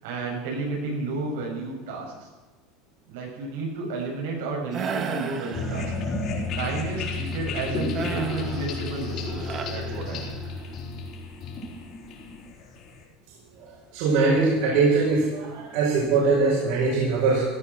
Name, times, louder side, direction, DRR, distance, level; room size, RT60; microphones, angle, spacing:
voice 1, 0.0-2.3 3.1-5.9 6.6-10.3, right 3 dB, 85° right, -1 dB, 6.9 m, -32 dB
sound 1, 4.7-6.3 8.0-10.6, right 6 dB, 30° right, 1.5 m, -35 dB
sound 2, 5.5-13.0, left 3 dB, 40° left, 4.4 m, -32 dB
voice 2, 13.6-17.4, right 4 dB, 65° right, -4 dB, 5.2 m, -22 dB
16.0 x 13.0 x 6.2 m, 1.3 s
supercardioid pair, 155°, 0 cm